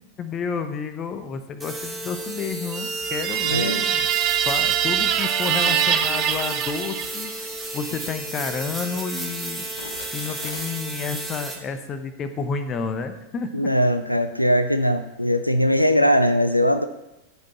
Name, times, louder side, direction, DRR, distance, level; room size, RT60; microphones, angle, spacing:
voice 1, 0.2-4.1 4.5-9.6 10.1-13.7, left 5 dB, 30° left, 9 dB, 0.9 m, -30 dB
sound 1, 1.6-11.6, right 2 dB, 5° right, 1.9 m, -33 dB
sound 2, 2.7-7.5, right 10 dB, 35° right, 0.7 m, -23 dB
voice 2, 3.4-3.8 13.5-16.8, equal, 90° left, 10 dB, 0.4 m, -20 dB
sound 3, 8.8-10.8 11.5-11.8, left 4 dB, 65° left, 1.0 m, -43 dB
14.0 x 5.3 x 4.2 m, 0.93 s
figure-of-eight pair, 90°, 0 cm